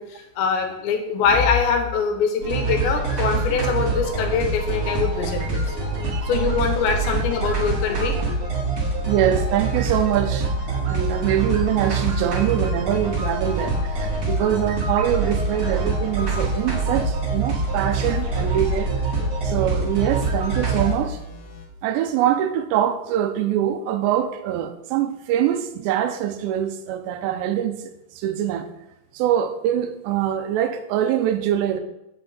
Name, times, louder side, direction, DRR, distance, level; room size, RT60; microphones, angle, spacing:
voice 1, 0.0-5.7 6.3-8.2, left 5 dB, 85° left, 3.3 m, -23 dB
sound 1, 2.4-21.0, right 3 dB, 40° right, 2.2 m, -25 dB
voice 2, 9.1-18.9 19.4-21.2 21.8-28.7 29.1-31.8, right 10 dB, 85° right, 2.9 m, -24 dB
sound 2, 13.6-21.7, equal, 65° left, 2.1 m, -35 dB
7.8 x 7.1 x 4.0 m
omnidirectional pair, 5.0 m